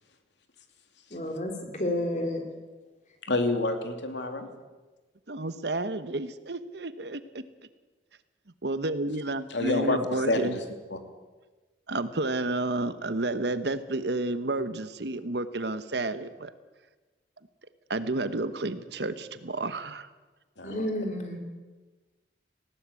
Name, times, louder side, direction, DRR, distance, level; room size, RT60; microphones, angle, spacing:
voice 1, 1.1-2.4 20.6-21.4, left 1 dB, 40° left, 3.5 m, -30 dB
voice 2, 3.2-4.5 9.5-10.6 10.9-11.0 20.6-20.8, left 2 dB, 75° left, 2.7 m, -28 dB
voice 3, 5.3-7.4 8.6-10.6 11.9-16.5 17.9-20.1, right 2 dB, 65° right, 1.1 m, -31 dB
20.0 x 17.0 x 8.4 m
head